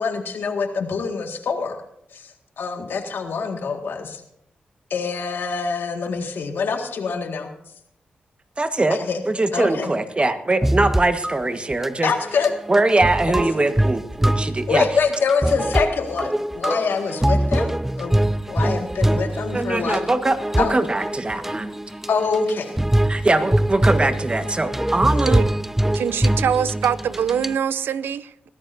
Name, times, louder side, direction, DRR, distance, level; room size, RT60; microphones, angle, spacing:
voice 1, 0.0-1.8 2.1-4.2 4.9-7.5 8.9-9.2 9.5-9.9 12.0-12.5 13.2-13.3 14.7-18.2 18.5-20.0 20.6-20.7 22.1-22.7, left 5 dB, 75° left, 4 dB, 1.9 m, -25 dB
voice 2, 8.6-9.0 9.3-12.1 12.7-14.9 19.5-21.7 23.1-25.4, right 2 dB, 30° right, 9 dB, 1.4 m, -21 dB
sound 1, 10.6-11.4 11.7-11.9 12.3-27.6, right 1 dB, 10° right, 0.5 m, -23 dB
voice 3, 25.9-28.5, right 8 dB, 85° right, 16 dB, 0.5 m, -23 dB
21.0 x 14.0 x 2.7 m, 0.73 s
cardioid pair, 50°, 4 cm